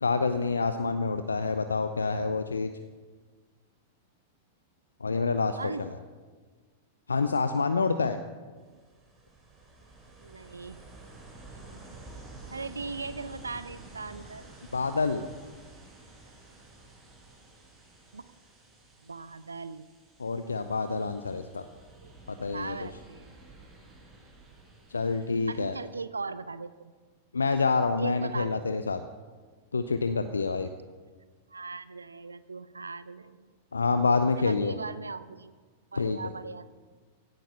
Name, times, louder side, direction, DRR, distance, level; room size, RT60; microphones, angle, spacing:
voice 1, 0.0-2.7 5.0-5.9 7.1-8.2 14.7-15.2 20.2-21.7 22.3-22.8 24.9-25.7 27.3-29.0 29.7-30.7 33.7-34.8 35.9-36.2, left 4 dB, 75° left, 10 dB, 0.6 m, -27 dB
Ocean, 8.6-25.9, right 2 dB, 20° right, 4.8 m, -51 dB
voice 2, 10.2-10.8 12.1-12.2 12.5-14.5 18.1-18.3 19.0-19.9 22.0-22.2 22.5-23.3 25.5-26.9 28.0-28.7 31.5-33.5 34.4-35.5 35.9-36.7, right 4 dB, 75° right, 15 dB, 0.5 m, -39 dB
16.5 x 11.5 x 5.6 m, 1.5 s
figure-of-eight pair, 95°, 0 cm